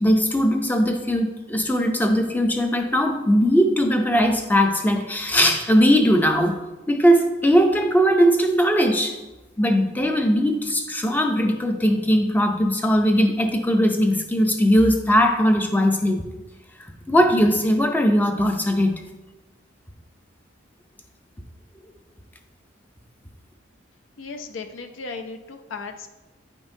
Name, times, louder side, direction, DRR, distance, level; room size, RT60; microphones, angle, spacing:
voice 1, 0.0-6.6 6.9-9.2 9.6-16.2 16.8-19.0, equal, 10° left, 5 dB, 0.4 m, -19 dB
voice 2, 24.2-26.1, left 4 dB, 75° left, 6 dB, 0.5 m, -36 dB
8.7 x 5.3 x 2.7 m, 1.1 s
head